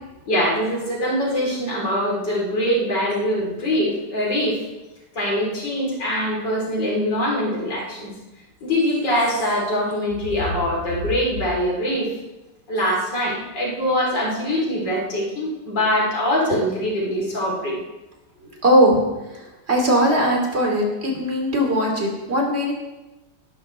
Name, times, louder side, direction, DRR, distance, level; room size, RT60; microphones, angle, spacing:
voice 1, 0.3-4.6 5.1-8.1 8.6-12.1 12.7-17.8, equal, 70° left, -4 dB, 4.2 m, -23 dB
voice 2, 18.5-19.0 19.3-22.7, equal, 35° right, 0 dB, 3.3 m, -20 dB
19.0 x 11.5 x 3.3 m, 1.0 s
omnidirectional pair, 2.0 m